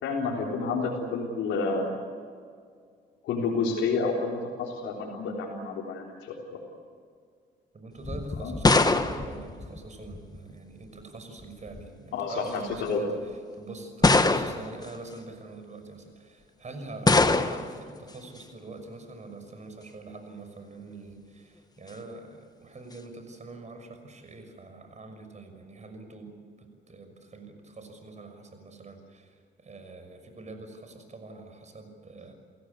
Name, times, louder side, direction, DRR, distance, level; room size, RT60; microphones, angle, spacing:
voice 1, 0.0-1.9 3.2-6.6 8.4-8.5 12.1-13.0, left 4 dB, 85° left, -4 dB, 3.9 m, -30 dB
voice 2, 7.7-13.2 13.5-32.3, right 2 dB, 35° right, 7 dB, 6.1 m, -44 dB
sound 1, 8.0-10.4 11.4-11.9 12.7-12.8 14.0-14.8 17.1-17.8, left 3 dB, 20° left, 1.4 m, -23 dB
29.5 x 17.0 x 8.4 m, 2.1 s
cardioid pair, 90°, 20 cm